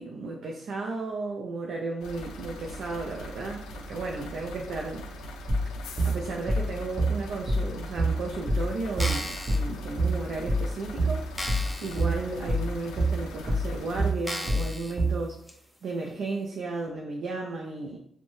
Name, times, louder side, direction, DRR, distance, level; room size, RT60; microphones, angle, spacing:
voice 1, 0.0-5.1 6.0-11.3 11.8-15.4 15.8-18.0, right 3 dB, 70° right, 0 dB, 0.4 m, -34 dB
sound 1, 2.0-14.1, equal, 85° left, 0.3 m, -41 dB
sound 2, 5.5-15.3, right 1 dB, 30° right, 0.7 m, -27 dB
sound 3, 8.9-9.6 10.3-10.4 10.8-10.9 11.4-12.0 12.5-12.6 13.3-13.4 14.2-14.9 15.5-15.6, left 1 dB, 10° left, 0.6 m, -35 dB
2.6 x 2.1 x 3.0 m, 0.68 s
supercardioid pair, 60°, 0 cm